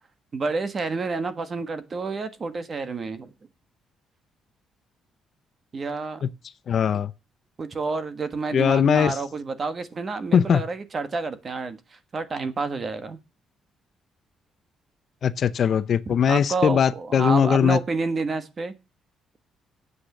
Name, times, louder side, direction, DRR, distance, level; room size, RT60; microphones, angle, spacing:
voice 1, 0.3-3.3 5.7-6.2 7.6-13.2 16.1-18.7, right 4 dB, 30° right, 1.2 m, -29 dB
voice 2, 6.7-7.1 8.5-9.2 10.3-10.6 15.2-17.8, left 7 dB, 45° left, 0.6 m, -20 dB
8.8 x 8.2 x 6.6 m
cardioid pair, 165°, 0 cm